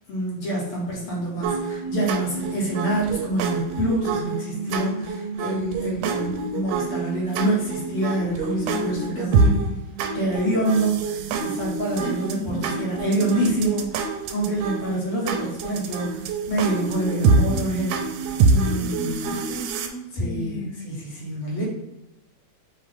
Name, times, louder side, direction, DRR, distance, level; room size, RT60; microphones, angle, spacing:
voice 1, 0.1-9.6 10.1-19.4 20.1-21.7, right 1 dB, 55° left, -5 dB, 1.9 m, -26 dB
sound 1, 1.4-19.9, right 4 dB, 85° right, 2.0 m, -26 dB
voice 2, 8.6-9.7 12.0-12.6 18.7-20.8 21.6-21.7, left 2 dB, 75° left, -1 dB, 2.2 m, -35 dB
5.7 x 2.4 x 3.4 m, 0.98 s
omnidirectional pair, 3.5 m